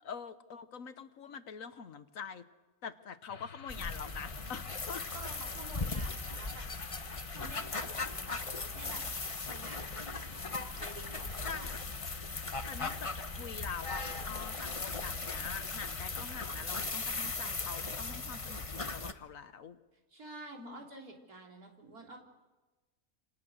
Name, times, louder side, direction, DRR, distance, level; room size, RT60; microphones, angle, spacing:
voice 1, 0.0-2.4 2.8-5.0 11.5-11.8 12.7-19.8 20.6-20.8, left 6 dB, 65° left, 11 dB, 1.5 m, -44 dB
sound 1, 3.3-16.5, left 5 dB, 90° left, 1.9 m, -52 dB
sound 2, 3.7-19.1, left 3 dB, 25° left, 1.0 m, -38 dB
voice 2, 5.1-6.6 7.3-9.0 9.5-10.4 10.8-11.7 20.1-22.2, right 2 dB, 80° right, 0 dB, 4.0 m, -50 dB
28.5 x 26.5 x 6.5 m, 1.2 s
omnidirectional pair, 1.6 m